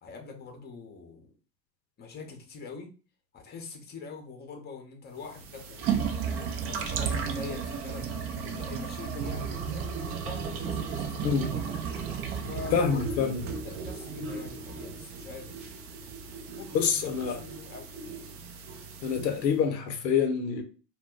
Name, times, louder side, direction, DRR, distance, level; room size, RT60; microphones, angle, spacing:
voice 1, 0.0-1.3 2.0-2.9 3.3-6.1 6.6-8.1 8.4-11.6 12.4-15.7 16.5-17.9, left 4 dB, 20° left, 0.6 m, -44 dB
sound 1, 5.2-19.5, right 6 dB, 30° right, 0.4 m, -34 dB
voice 2, 12.7-13.4 16.7-17.4 19.0-20.6, left 6 dB, 80° left, 0.6 m, -26 dB
2.1 x 2.0 x 3.6 m
hypercardioid pair, 75°, 50 cm